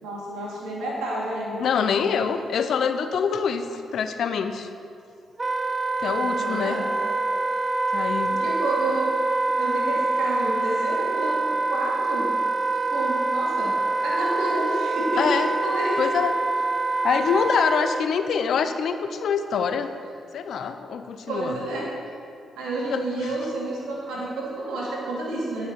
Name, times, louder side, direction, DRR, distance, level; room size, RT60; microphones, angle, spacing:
voice 1, 0.0-1.7 6.4-6.8 8.3-9.1 9.6-12.3 12.9-13.7 14.0-16.0 21.3-21.9 22.6-23.8 24.1-25.7, right 2 dB, 80° right, -5 dB, 2.8 m, -29 dB
voice 2, 1.6-4.7 6.0-6.8 7.9-8.4 15.2-15.5 16.0-16.4 17.0-19.9 20.3-21.6 22.9-23.3, left 6 dB, 70° left, 9 dB, 0.7 m, -25 dB
Wind instrument woodwind instrument, 5.4-18.1, right 2 dB, 30° right, 0.6 m, -25 dB
10.5 x 6.3 x 7.0 m, 2.5 s
hypercardioid pair, 45°, 0 cm